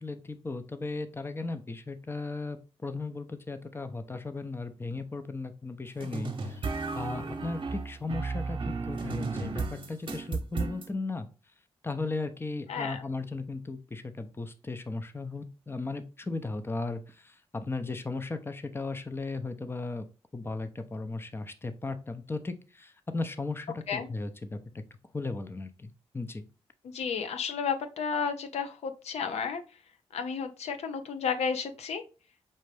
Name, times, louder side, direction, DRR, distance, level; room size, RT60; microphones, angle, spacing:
voice 1, 0.0-6.6 6.9-11.3 11.8-20.1 20.3-24.8 25.1-26.4, left 3 dB, 20° left, 9 dB, 0.6 m, -36 dB
sound 1, 6.0-10.9, right 4 dB, 50° right, 0.9 m, -34 dB
voice 2, 12.7-13.0 23.9-24.1 26.8-29.6 30.1-32.0, left 6 dB, 80° left, 8 dB, 0.5 m, -32 dB
5.4 x 2.5 x 3.3 m, 0.33 s
cardioid pair, 60°, 11 cm